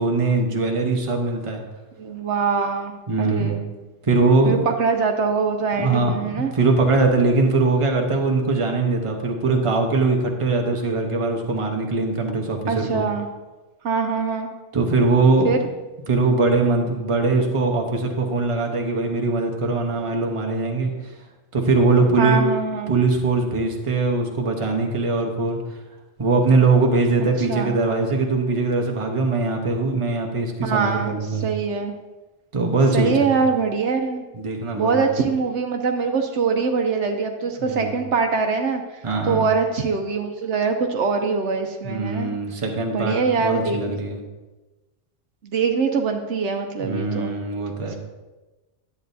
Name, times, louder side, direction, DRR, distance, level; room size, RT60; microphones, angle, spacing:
voice 1, 0.0-1.6 3.1-3.5 4.0-4.6 5.8-13.0 14.7-15.5 16.1-20.9 21.5-22.4 22.9-25.6 26.2-31.5 32.5-33.1 34.3-35.1 37.6-38.0 39.0-39.4 41.8-44.2 46.8-47.9, right 3 dB, 30° right, 2 dB, 0.9 m, -21 dB
voice 2, 2.0-3.7 4.4-6.5 12.7-13.3 13.8-14.5 15.4-15.6 22.2-23.0 27.4-27.7 30.6-31.9 32.9-34.2 34.8-42.3 42.9-44.0 45.4-47.3, right 5 dB, 70° right, 4 dB, 0.9 m, -23 dB
10.5 x 8.2 x 2.7 m, 1.1 s
omnidirectional pair, 1.3 m